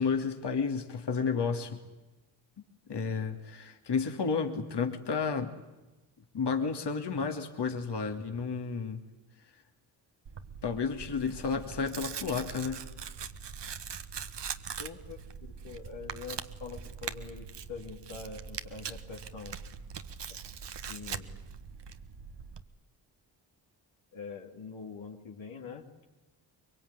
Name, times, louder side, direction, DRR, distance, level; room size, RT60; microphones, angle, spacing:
voice 1, 0.0-1.8 2.9-5.5 6.3-9.0 10.6-12.8, left 5 dB, 55° left, 4 dB, 2.8 m, -31 dB
Tearing, 10.3-22.6, right 7 dB, 55° right, 1.6 m, -42 dB
voice 2, 14.8-15.2 15.6-19.6 20.9-21.4 24.1-26.0, left 5 dB, 70° left, 1 dB, 2.8 m, -44 dB
23.5 x 23.0 x 9.8 m, 1.1 s
supercardioid pair, 50°, 49 cm